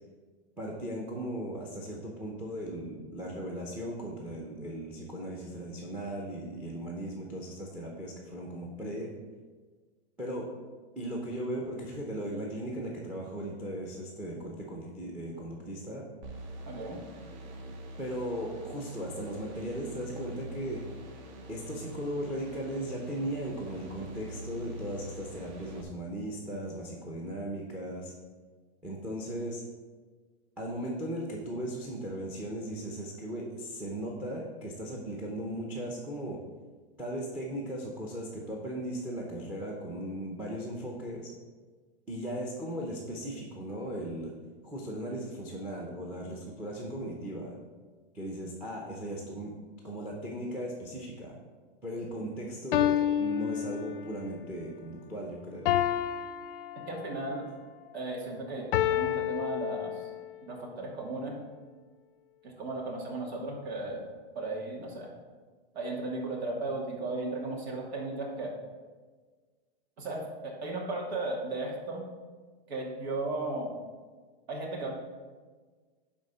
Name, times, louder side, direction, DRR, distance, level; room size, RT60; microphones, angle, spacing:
voice 1, 0.6-9.1 10.2-10.5 11.0-16.1 18.0-20.8 21.5-28.1 28.8-29.6 30.6-36.4 37.0-41.3 42.1-44.3 44.6-47.5 48.1-49.5 49.8-51.4 51.8-55.7, right 1 dB, 5° right, -1 dB, 0.7 m, -37 dB
sound 1, 16.2-25.8, right 1 dB, 45° right, 1.2 m, -44 dB
voice 2, 16.6-17.0 56.9-57.5 57.9-60.1 60.4-61.4 62.4-64.0 64.3-65.1 65.7-68.5 70.0-72.0 72.7-73.7 74.5-74.9, right 2 dB, 75° right, -1 dB, 2.5 m, -35 dB
sound 2, 52.0-52.1 52.7-54.3 55.6-57.3 58.7-60.3, left 11 dB, 55° left, 0.6 m, -29 dB
10.5 x 3.7 x 5.5 m, 1.4 s
hypercardioid pair, 155°, 32 cm